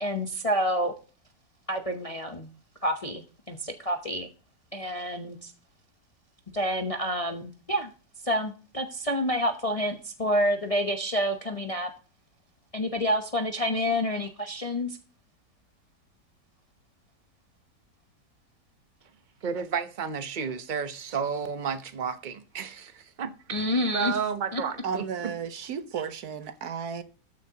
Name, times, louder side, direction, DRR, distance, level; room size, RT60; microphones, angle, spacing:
voice 1, 0.0-0.9 1.7-2.5 2.8-4.3 4.7-5.5 6.5-7.9 8.2-11.9 12.7-15.0 23.5-24.2 24.5-24.6, equal, 30° left, 0.7 m, -28 dB
voice 2, 19.4-25.3, right 6 dB, 40° right, 0.8 m, -32 dB
voice 3, 24.8-27.0, right 7 dB, 70° right, 1.4 m, -33 dB
13.5 x 9.4 x 2.8 m
omnidirectional pair, 1.8 m